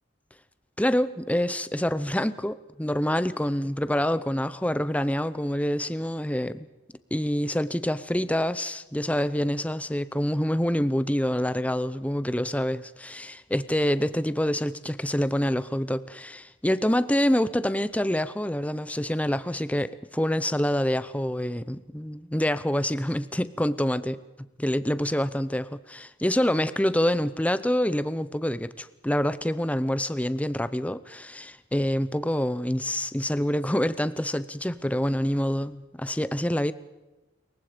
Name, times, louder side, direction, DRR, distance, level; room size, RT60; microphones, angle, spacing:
voice 1, 0.8-6.7 7.1-24.2 24.6-36.7, equal, 5° left, 14 dB, 0.7 m, -26 dB
27.0 x 23.0 x 5.1 m, 1.1 s
head